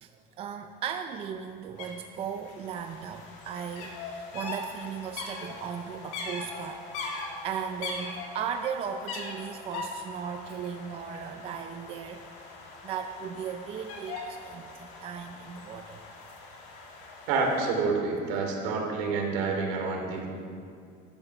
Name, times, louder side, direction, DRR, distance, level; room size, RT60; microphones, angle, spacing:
voice 1, 0.0-12.2 12.8-16.0, right 7 dB, 35° right, 6 dB, 0.6 m, -37 dB
sound 1, 1.8-1.9 2.2-17.7, left 3 dB, 75° left, 3.0 m, -41 dB
voice 2, 17.3-20.3, right 4 dB, 80° right, 1 dB, 3.0 m, -28 dB
12.5 x 10.5 x 7.0 m, 2.4 s
cardioid pair, 165°, 17 cm